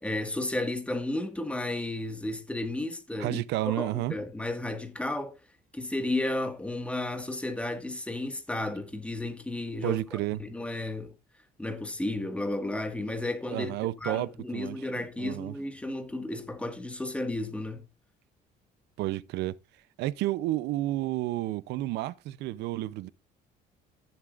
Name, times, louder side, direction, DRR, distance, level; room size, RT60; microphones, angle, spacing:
voice 1, 0.0-5.3 5.7-11.1 11.6-17.8, left 2 dB, 5° left, 1.7 m, -33 dB
voice 2, 3.2-4.2 9.8-10.4 13.5-15.5 19.0-19.6 20.0-23.1, right 16 dB, 85° right, 0.6 m, -31 dB
14.5 x 7.3 x 2.5 m
cardioid pair, 110°, 17 cm